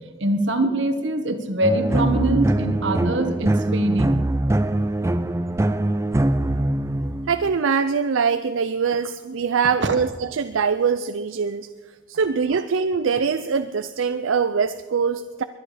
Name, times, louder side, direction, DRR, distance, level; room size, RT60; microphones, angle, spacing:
voice 1, 0.2-4.3 9.8-9.9 12.5-12.6, right 1 dB, 70° right, 8 dB, 1.4 m, -23 dB
sound 1, 1.6-7.6, right 1 dB, 15° right, 0.4 m, -22 dB
voice 2, 7.3-11.7 12.1-15.4, right 6 dB, 85° right, 11 dB, 0.5 m, -23 dB
22.0 x 10.0 x 5.0 m, 1.3 s
head